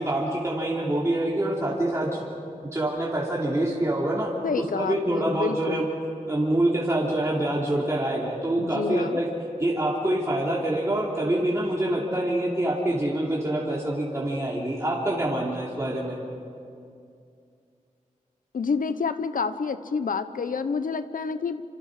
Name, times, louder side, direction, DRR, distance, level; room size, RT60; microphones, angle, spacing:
voice 1, 0.0-2.2 2.7-4.3 4.8-5.8 6.3-9.3 9.6-16.2, right 1 dB, 20° right, -5 dB, 3.1 m, -26 dB
voice 2, 4.4-5.9 8.6-9.2 18.5-21.6, left 5 dB, 90° left, 11 dB, 1.0 m, -28 dB
27.5 x 26.5 x 5.0 m, 2.4 s
wide cardioid pair, 105°, 14 cm